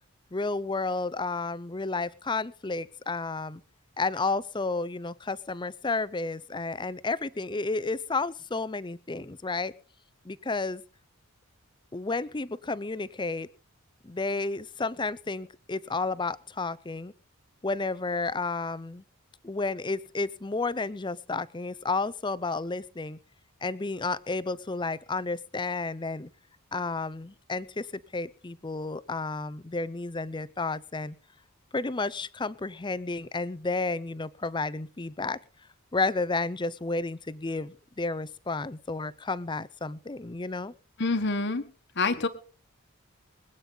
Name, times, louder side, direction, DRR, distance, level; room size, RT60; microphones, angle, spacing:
voice 1, 0.3-3.6 4.0-9.7 10.2-10.8 11.9-13.5 14.0-17.1 17.6-19.0 19.4-23.2 23.6-26.3 26.7-31.2 31.7-35.4 35.9-40.7, left 3 dB, 20° left, 18 dB, 0.6 m, -31 dB
voice 2, 41.0-41.6 42.0-42.3, left 3 dB, 50° left, 8 dB, 1.3 m, -26 dB
24.0 x 8.8 x 4.0 m, 0.37 s
head